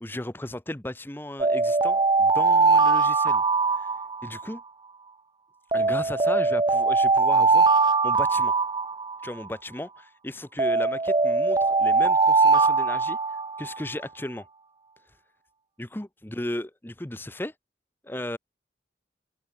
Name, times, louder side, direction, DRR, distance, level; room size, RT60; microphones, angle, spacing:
voice 1, 0.0-3.4 3.8-3.9 4.2-4.6 5.7-7.7 8.0-8.5 9.2-13.2 13.6-14.5 15.8-17.5 18.0-18.4, left 1 dB, 10° left, 0.7 m, -35 dB
sound 1, 1.4-4.6 5.7-9.5 10.6-13.8, right 4 dB, 25° right, 0.5 m, -21 dB
open air
head